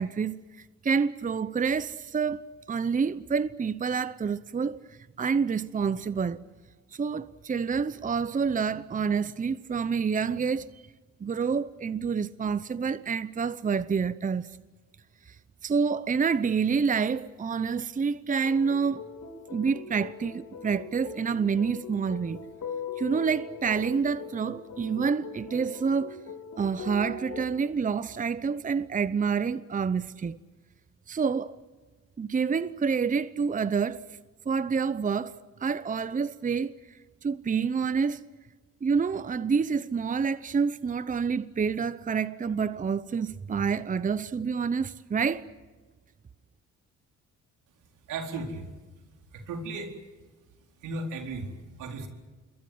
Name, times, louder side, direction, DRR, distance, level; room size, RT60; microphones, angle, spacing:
voice 1, 0.0-2.4 2.7-4.8 5.2-6.5 6.9-10.7 11.2-14.5 15.6-19.1 19.5-22.4 23.0-26.2 26.6-30.4 31.1-31.6 32.2-34.0 34.5-36.8 37.2-38.2 38.8-45.5, right 5 dB, 25° right, 0.8 m, -28 dB
sound 1, 18.4-27.5, left 5 dB, 70° left, 4.2 m, -41 dB
voice 2, 48.1-48.7 49.3-49.9 50.8-52.1, right 3 dB, 85° right, 4.4 m, -35 dB
27.5 x 22.5 x 8.0 m
cardioid pair, 90°, 30 cm